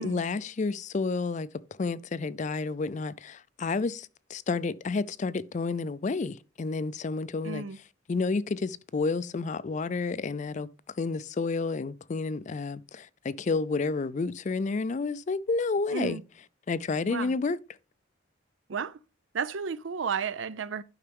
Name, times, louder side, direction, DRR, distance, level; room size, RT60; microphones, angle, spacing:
voice 1, 0.0-1.5 1.8-7.6 8.1-10.7 11.0-16.2 16.7-17.6, left 4 dB, 40° left, 0.4 m, -30 dB
voice 2, 7.4-7.8 15.9-16.2 17.1-17.3 18.7-19.0 19.3-20.8, right 6 dB, 75° right, 0.5 m, -33 dB
11.5 x 5.7 x 3.4 m
head